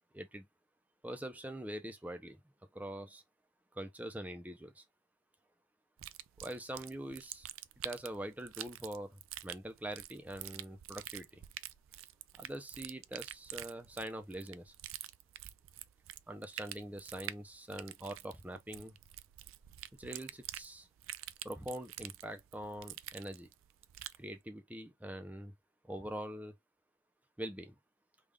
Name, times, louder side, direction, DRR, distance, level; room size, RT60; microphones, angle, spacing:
voice 1, 0.1-0.5 1.0-2.4 2.7-3.2 3.7-4.8 6.4-7.5 7.8-11.4 12.3-14.7 16.3-18.9 20.0-20.9 21.4-23.5 24.2-25.5 25.8-26.6 27.4-27.7, right 1 dB, 10° right, 0.5 m, -44 dB
sound 1, 6.0-24.2, right 14 dB, 90° right, 0.3 m, -47 dB
3.6 x 2.4 x 3.3 m
head